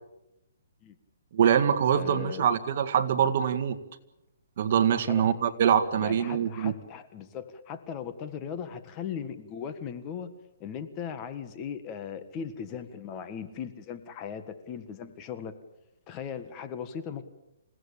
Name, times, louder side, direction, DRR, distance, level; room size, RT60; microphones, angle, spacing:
voice 1, 1.3-3.8 4.6-6.7, right 8 dB, 45° right, 10 dB, 1.8 m, -24 dB
voice 2, 1.9-2.6 5.1-5.4 6.0-10.3 10.6-15.5 16.1-17.2, left 7 dB, 20° left, 9 dB, 1.6 m, -38 dB
28.5 x 17.0 x 8.7 m, 0.92 s
hypercardioid pair, 165°, 0 cm